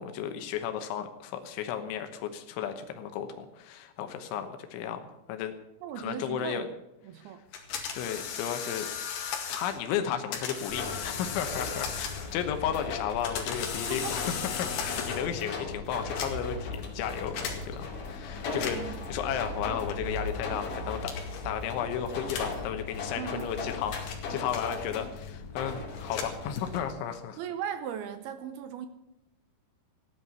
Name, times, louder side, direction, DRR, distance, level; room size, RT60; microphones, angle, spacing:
voice 1, 0.0-5.0 5.3-5.5 6.0-6.7 7.2-7.3 7.9-8.9 9.5-14.2 14.6-21.2 21.4-27.4, left 9 dB, 90° left, 7 dB, 3.5 m, -34 dB
voice 2, 5.8-6.8 7.0-7.4 13.8-14.3 18.6-19.1 23.2-23.6 27.4-28.9, right 9 dB, 75° right, 10 dB, 2.4 m, -38 dB
sound 1, 7.5-9.8 10.3-12.4 13.0-15.4 16.0-16.6 17.4-17.6 18.5-19.0 19.9-20.2 21.0-21.4 22.2-22.6 23.4-25.1 25.9-26.9, left 7 dB, 65° left, 4.0 m, -36 dB
sound 2, 10.7-26.8, left 3 dB, 50° left, 3.8 m, -38 dB
15.5 x 10.5 x 7.0 m, 0.91 s
omnidirectional pair, 5.2 m